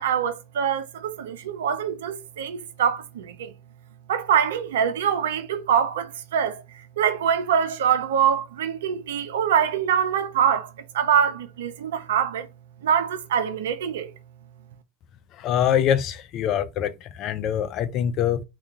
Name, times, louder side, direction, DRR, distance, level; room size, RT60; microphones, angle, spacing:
voice 1, 0.0-3.5 4.1-6.6 7.0-12.5 12.8-14.1, right 8 dB, 70° right, 0.4 m, -24 dB
voice 2, 15.4-18.4, left 9 dB, 45° left, 0.4 m, -24 dB
2.3 x 2.2 x 2.8 m
figure-of-eight pair, 80°, 0 cm